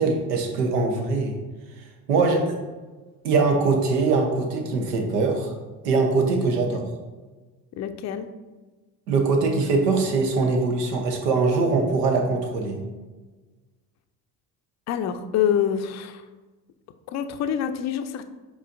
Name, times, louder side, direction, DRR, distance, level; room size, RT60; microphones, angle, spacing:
voice 1, 0.0-1.3 2.1-2.6 3.2-5.5 5.8-6.9 9.1-12.8, right 3 dB, 80° right, 3 dB, 0.9 m, -22 dB
voice 2, 7.8-8.3 14.9-16.2 17.1-18.2, left 9 dB, 35° left, 9 dB, 0.4 m, -26 dB
4.9 x 4.1 x 2.6 m, 1.3 s
hypercardioid pair, 60°, 47 cm